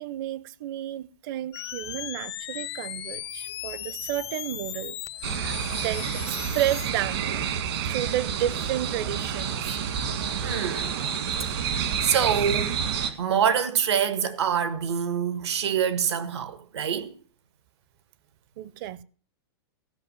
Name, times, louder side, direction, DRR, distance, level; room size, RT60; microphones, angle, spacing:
voice 1, 0.0-5.0 5.3-7.3 7.8-9.8 18.6-19.0, right 12 dB, 55° right, 0.7 m, -31 dB
sound 1, 1.5-6.9, left 13 dB, 75° left, 0.7 m, -37 dB
sound 2, 5.2-13.1, right 7 dB, 70° right, 2.1 m, -29 dB
voice 2, 10.4-11.0 11.7-12.7 13.2-17.1, right 8 dB, 85° right, 1.6 m, -26 dB
15.5 x 5.7 x 7.4 m
hypercardioid pair, 140°, 14 cm